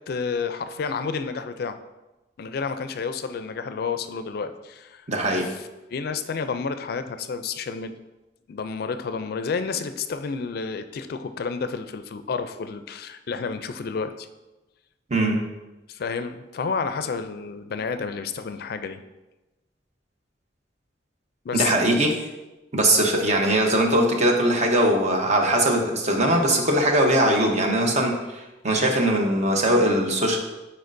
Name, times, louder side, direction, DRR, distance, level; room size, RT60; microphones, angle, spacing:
voice 1, 0.1-1.8 2.4-5.1 5.4-5.6 5.9-7.9 8.5-14.3 15.9-19.0 21.4-21.9, left 5 dB, 60° left, 10 dB, 0.4 m, -30 dB
voice 2, 5.1-5.5 15.1-15.4 21.5-22.2 22.7-30.4, right 1 dB, 40° right, 2 dB, 0.9 m, -21 dB
9.4 x 4.3 x 2.6 m, 1.1 s
head